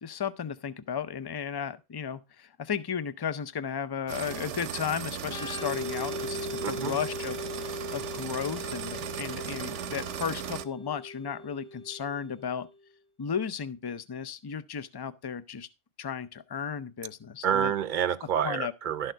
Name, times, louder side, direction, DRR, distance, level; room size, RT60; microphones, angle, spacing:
voice 1, 0.0-12.7 13.2-15.7 16.0-17.7 18.4-18.7, left 7 dB, 35° left, 0.4 m, -34 dB
sound 1, 4.1-10.6, right 9 dB, 90° right, 1.0 m, -37 dB
Organ, 5.2-12.8, left 2 dB, 60° left, 1.0 m, -40 dB
voice 2, 6.6-7.0 17.4-19.1, right 9 dB, 50° right, 0.7 m, -28 dB
12.0 x 6.6 x 4.5 m
omnidirectional pair, 1.2 m